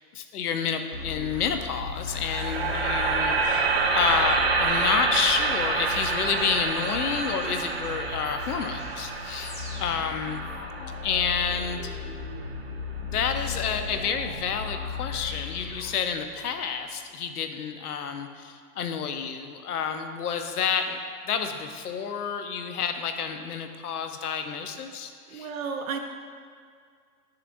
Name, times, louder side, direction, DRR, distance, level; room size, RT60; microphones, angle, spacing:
voice 1, 0.1-3.7 3.9-9.5 9.8-10.4 11.0-11.9 13.0-21.0 21.2-25.5, left 6 dB, 70° left, 7 dB, 0.8 m, -29 dB
sound 1, 0.9-16.5, left 5 dB, 55° left, 1.5 m, -37 dB
sound 2, 2.1-12.2, right 4 dB, 40° right, 0.5 m, -28 dB
voice 2, 25.3-26.0, right 6 dB, 60° right, 4 dB, 0.8 m, -32 dB
10.5 x 6.8 x 2.6 m, 2.1 s
hypercardioid pair, 175°, 47 cm